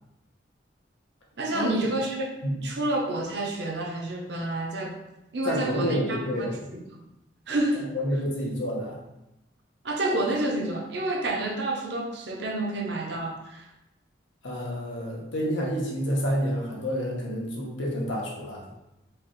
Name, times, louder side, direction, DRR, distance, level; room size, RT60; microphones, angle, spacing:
voice 1, 1.4-5.0 5.3-6.5 6.7-7.0 7.5-7.9 9.8-13.7, right 1 dB, 60° right, 1 dB, 0.6 m, -29 dB
voice 2, 5.4-6.6 7.9-9.0 14.4-18.6, equal, 80° left, -2 dB, 1.0 m, -29 dB
4.7 x 2.4 x 3.0 m, 0.91 s
head